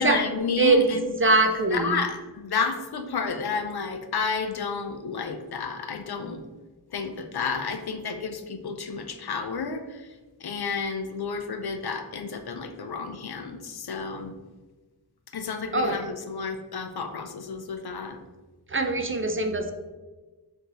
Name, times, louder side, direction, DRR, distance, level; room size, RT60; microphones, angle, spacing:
voice 1, 0.0-1.1 1.7-6.4 6.9-10.2 10.4-14.3 15.3-18.2, left 5 dB, 70° left, 6 dB, 0.5 m, -31 dB
voice 2, 0.6-0.9 1.2-2.0 15.7-16.0 18.7-19.7, right 3 dB, 35° right, 6 dB, 0.4 m, -22 dB
4.5 x 2.7 x 3.9 m, 1.2 s
wide cardioid pair, 60°, 40 cm